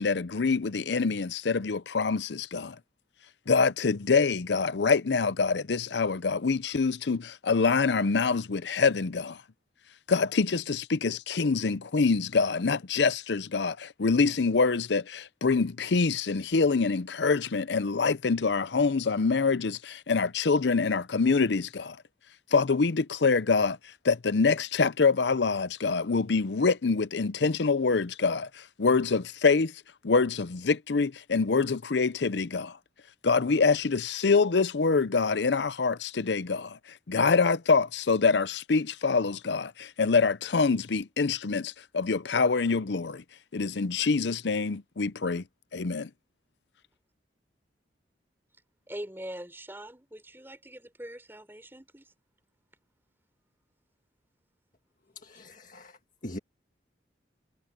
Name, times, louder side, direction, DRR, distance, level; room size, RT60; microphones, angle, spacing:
voice 1, 0.0-2.8 3.5-9.4 10.1-22.0 22.5-23.8 24.0-29.7 30.0-32.8 33.2-36.8 37.1-43.2 43.5-45.4 45.7-46.1, left 4 dB, 70° left, 0.6 m, -25 dB
voice 2, 48.9-52.1, right 1 dB, 10° right, 4.4 m, -42 dB
voice 3, 55.2-55.9 56.2-56.4, left 1 dB, 45° left, 1.8 m, -41 dB
head